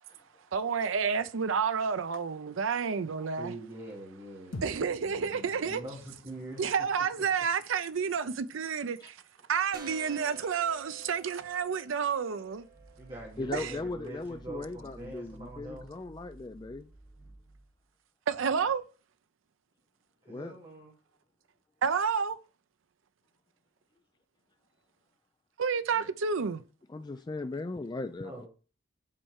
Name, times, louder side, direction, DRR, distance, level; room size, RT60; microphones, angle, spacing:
voice 1, 0.5-3.5 4.6-5.8 6.6-9.2 9.5-12.7 13.5-13.7 18.3-18.8 21.8-22.4 25.6-26.6, right 6 dB, 85° right, 0.5 m, -30 dB
voice 2, 3.4-6.6 13.0-15.9 18.6-18.7 20.3-20.9 25.9-26.1 28.2-28.5, right 1 dB, 25° right, 2.1 m, -44 dB
sound 1, 4.5-8.9, left 1 dB, 85° left, 1.2 m, -48 dB
sound 2, 9.7-15.2, right 4 dB, 50° right, 1.5 m, -52 dB
sound 3, 12.4-17.9, right 2 dB, 5° right, 1.2 m, -54 dB
voice 3, 13.4-16.9 20.3-20.6 26.9-28.5, left 2 dB, 20° left, 0.3 m, -38 dB
7.5 x 4.4 x 6.4 m
head